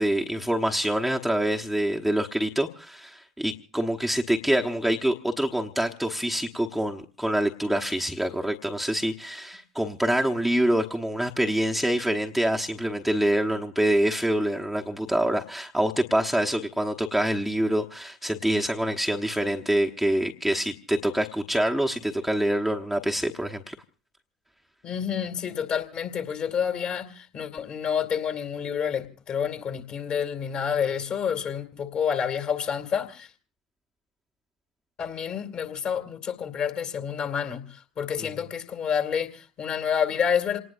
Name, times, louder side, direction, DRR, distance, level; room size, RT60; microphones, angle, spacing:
voice 1, 0.0-23.7, right 1 dB, ahead, 1.1 m, -26 dB
voice 2, 24.8-33.3 35.0-40.6, left 7 dB, 40° left, 2.4 m, -29 dB
27.5 x 19.0 x 2.6 m
figure-of-eight pair, 70°, 3 cm